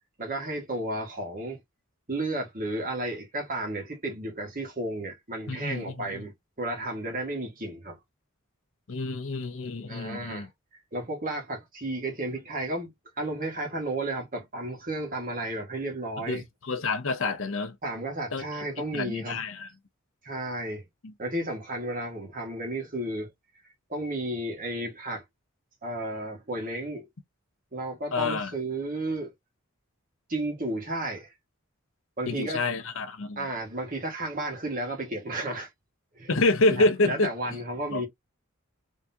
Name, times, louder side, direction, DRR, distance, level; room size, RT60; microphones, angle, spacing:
voice 1, 0.2-1.6 2.1-6.3 6.6-8.0 9.9-10.5 10.9-12.9 13.2-16.4 17.8-19.4 20.2-20.8 21.2-23.3 23.9-25.2 25.8-27.1 27.7-29.3 30.3-31.3 32.2-32.6 33.4-35.7 36.2-36.3 36.8-38.1, right 1 dB, 40° right, 1.9 m, -33 dB
voice 2, 5.5-6.2 8.9-10.5 16.3-17.8 18.3-18.4 18.9-19.7 21.0-21.1 28.1-28.5 32.3-33.5 36.3-37.3 37.9-38.0, left 3 dB, 65° left, 0.8 m, -27 dB
3.7 x 3.5 x 2.8 m
head